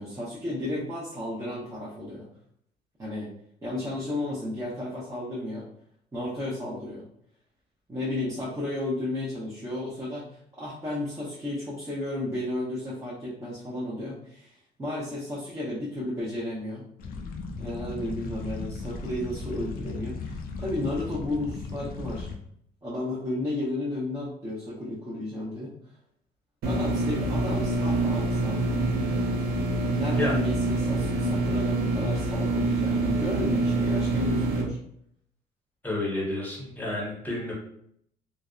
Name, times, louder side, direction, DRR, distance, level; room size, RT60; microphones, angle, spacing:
voice 1, 0.0-2.3 3.0-3.3 3.6-5.6 6.1-7.0 7.9-10.2 10.5-16.8 17.6-22.3 22.8-25.7 26.6-28.6 29.9-34.8, left 1 dB, 15° right, -7 dB, 0.7 m, -33 dB
sound 1, 17.0-22.4, left 3 dB, 60° left, 0.4 m, -36 dB
sound 2, 26.6-34.6, right 2 dB, 65° right, 0.6 m, -26 dB
voice 2, 35.8-37.5, left 2 dB, 10° left, -3 dB, 0.8 m, -30 dB
2.5 x 2.1 x 2.3 m, 0.70 s
cardioid pair, 110°, 17 cm